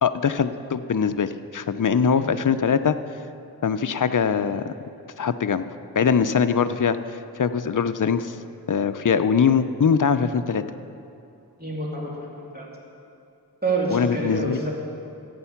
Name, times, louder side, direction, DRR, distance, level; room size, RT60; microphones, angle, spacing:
voice 1, 0.0-3.0 3.6-4.7 5.2-5.7 6.0-8.4 8.7-10.6 13.9-14.6, left 6 dB, 50° left, 10 dB, 0.6 m, -22 dB
voice 2, 11.6-12.1 12.5-12.7 13.6-14.7, right 3 dB, 25° right, -3 dB, 3.1 m, -27 dB
14.5 x 9.1 x 5.8 m, 2.6 s
wide cardioid pair, 45°, 39 cm